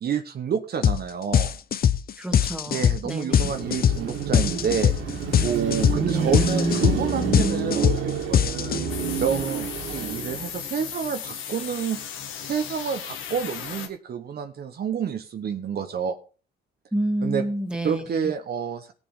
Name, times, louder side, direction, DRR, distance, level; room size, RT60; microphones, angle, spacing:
voice 1, 0.0-1.5 2.7-8.8 9.2-12.0 12.4-16.2 17.2-17.4 17.8-18.9, right 7 dB, 55° right, 7 dB, 1.0 m, -29 dB
sound 1, 0.8-1.0 1.3-9.1, left 9 dB, 50° left, 0.7 m, -22 dB
voice 2, 2.2-3.5 6.1-6.4 16.9-18.3, right 1 dB, 5° right, 4 dB, 2.0 m, -29 dB
Car passing by / Traffic noise roadway noise / Engine, 3.4-10.7, right 5 dB, 80° right, 2.8 m, -28 dB
sound 2, 8.9-13.9, left 8 dB, 85° left, 1.6 m, -36 dB
17.5 x 7.2 x 3.5 m, 0.37 s
cardioid pair, 90°, 20 cm